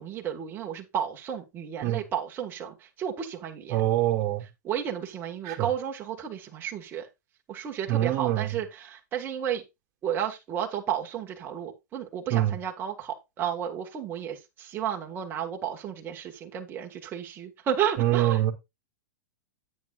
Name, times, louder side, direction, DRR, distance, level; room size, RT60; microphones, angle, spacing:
voice 1, 0.0-3.8 4.6-7.1 7.5-9.6 10.0-18.4, right 9 dB, 20° right, 1.6 m, -32 dB
voice 2, 3.7-4.4 5.4-5.7 7.9-8.6 12.3-12.6 18.0-18.5, right 13 dB, 35° right, 2.2 m, -25 dB
9.1 x 8.7 x 2.4 m
supercardioid pair, 155°, 10 cm